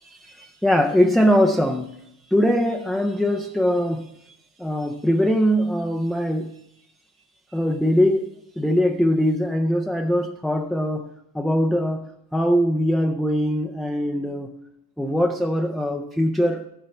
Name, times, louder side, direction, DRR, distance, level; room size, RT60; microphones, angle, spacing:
voice 1, 0.2-1.9 2.3-4.1 4.6-6.5 7.5-8.3 8.6-11.0 11.3-12.1 12.3-14.5 15.0-16.6, equal, ahead, 0.3 m, -21 dB
15.5 x 11.0 x 3.2 m
cardioid pair, 175°, 39 cm